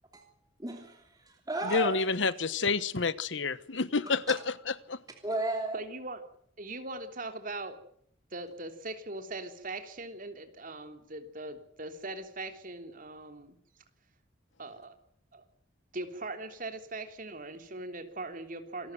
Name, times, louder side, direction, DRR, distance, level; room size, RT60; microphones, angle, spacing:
voice 1, 0.1-2.0 5.2-5.8, right 2 dB, 20° right, 3.0 m, -34 dB
voice 2, 1.7-4.4 4.7-5.0, left 4 dB, 70° left, 1.1 m, -29 dB
voice 3, 5.7-6.2 6.6-7.8 8.3-13.5 14.6-14.9 15.3-15.4 15.9-18.9, right 2 dB, 45° right, 3.3 m, -40 dB
27.0 x 14.0 x 9.2 m
head